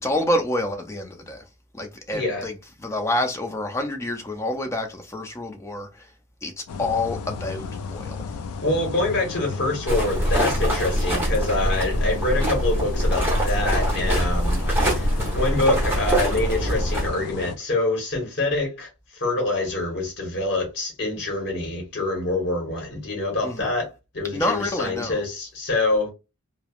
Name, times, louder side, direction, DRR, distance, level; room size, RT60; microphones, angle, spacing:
voice 1, 0.0-1.4 1.7-6.1 6.4-6.5 6.8-8.2 23.4-23.7 24.3-25.2, left 1 dB, 10° left, 0.4 m, -28 dB
voice 2, 2.1-2.5 8.6-23.9 24.1-26.1, left 2 dB, 50° left, 1.1 m, -26 dB
sound 1, 6.7-17.6, left 5 dB, 85° left, 0.3 m, -34 dB
sound 2, 9.9-17.1, equal, 10° right, 0.9 m, -23 dB
3.2 x 2.0 x 2.4 m
head